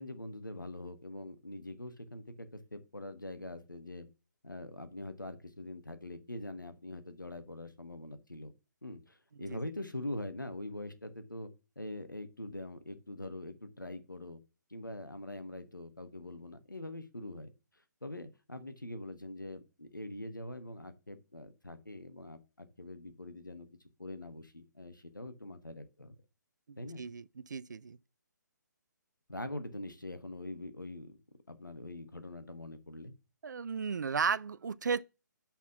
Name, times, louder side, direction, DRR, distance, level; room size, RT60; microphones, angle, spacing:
voice 1, 0.0-4.1 4.4-8.5 8.8-11.5 11.8-14.4 14.7-17.5 18.0-23.7 24.0-26.1 26.8-27.0 29.3-31.2 31.5-33.1, left 1 dB, 90° left, 1.2 m, -43 dB
voice 2, 26.7-28.0 33.4-35.0, right 5 dB, 65° right, 0.4 m, -34 dB
5.9 x 4.3 x 5.7 m
figure-of-eight pair, 135°, 10 cm